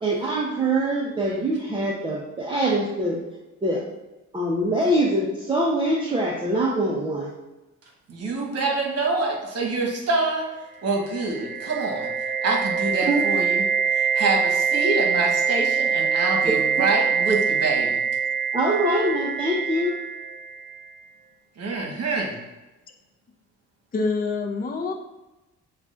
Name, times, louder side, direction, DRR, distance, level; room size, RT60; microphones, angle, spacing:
voice 1, 0.0-3.2 3.6-3.8 4.3-7.3 13.1-13.2 16.8-16.9 18.5-19.9, right 1 dB, 15° right, -4 dB, 0.7 m, -24 dB
voice 2, 8.1-10.4 10.8-12.1 12.4-13.6 13.9-18.0 21.6-22.4, right 3 dB, 55° right, 0 dB, 1.2 m, -26 dB
sound 1, 11.0-20.8, right 6 dB, 85° right, 0.5 m, -24 dB
voice 3, 23.9-24.9, left 4 dB, 30° left, 3 dB, 0.6 m, -26 dB
6.9 x 2.4 x 2.5 m, 1.0 s
cardioid pair, 90°, 30 cm